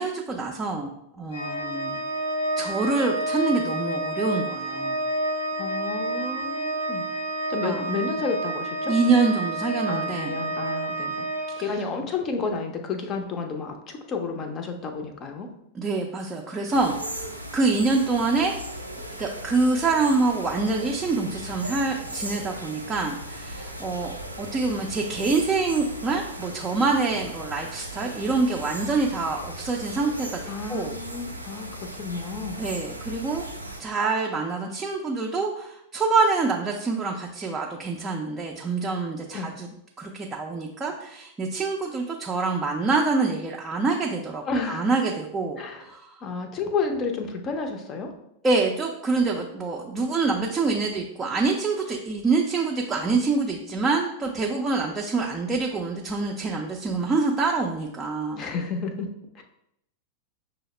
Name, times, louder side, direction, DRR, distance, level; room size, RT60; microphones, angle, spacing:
voice 1, 0.0-2.0 2.6-5.0 7.6-7.8 8.9-10.4 11.7-11.8 15.7-17.3 17.5-18.5 19.2-30.9 32.6-33.4 33.8-39.7 40.0-46.2 48.4-58.5, right 3 dB, 15° right, -1 dB, 0.5 m, -26 dB
Organ, 1.3-12.2, right 1 dB, 65° left, 0.8 m, -29 dB
voice 2, 5.6-7.1 7.5-8.9 9.9-11.3 11.6-15.5 30.5-32.6 39.3-39.5 44.5-44.8 45.6-45.9 46.2-48.1 58.4-59.4, left 4 dB, 30° left, 5 dB, 0.6 m, -31 dB
sound 1, 16.7-33.8, right 1 dB, 90° right, 0.4 m, -37 dB
6.1 x 2.0 x 3.1 m, 0.79 s
figure-of-eight pair, 90°, 0 cm